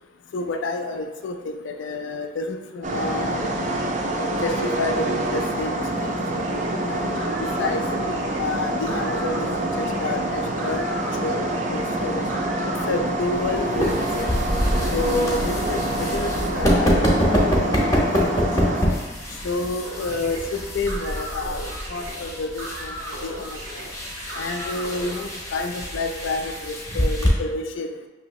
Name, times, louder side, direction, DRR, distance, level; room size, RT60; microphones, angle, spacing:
voice 1, 0.3-3.7 4.2-7.0 7.6-7.8 8.4-12.2 12.9-14.3 14.9-18.5 19.4-21.6 21.9-23.8 24.4-27.9, left 3 dB, 70° left, 5 dB, 0.4 m, -29 dB
sound 1, 2.8-18.9, right 1 dB, 35° right, 0.4 m, -26 dB
sound 2, 6.4-13.0 13.2-25.2, right 1 dB, 80° right, 0.7 m, -38 dB
sound 3, 13.3-27.3, equal, 15° left, 0.7 m, -26 dB
5.9 x 2.7 x 3.0 m, 1.2 s
head